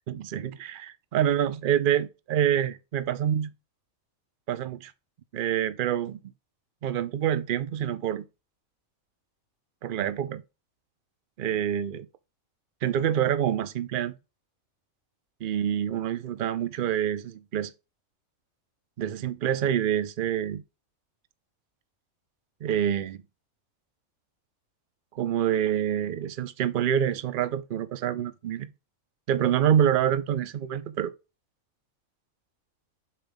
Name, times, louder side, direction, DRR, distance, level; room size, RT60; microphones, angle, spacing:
voice 1, 0.1-3.5 4.5-4.9 5.3-6.2 6.8-8.2 9.8-10.4 11.4-12.1 12.8-14.1 15.4-17.7 19.0-20.6 22.6-23.2 25.1-28.7 29.3-31.1, right 10 dB, 50° right, 0.6 m, -26 dB
5.7 x 4.5 x 5.2 m
omnidirectional pair, 1.5 m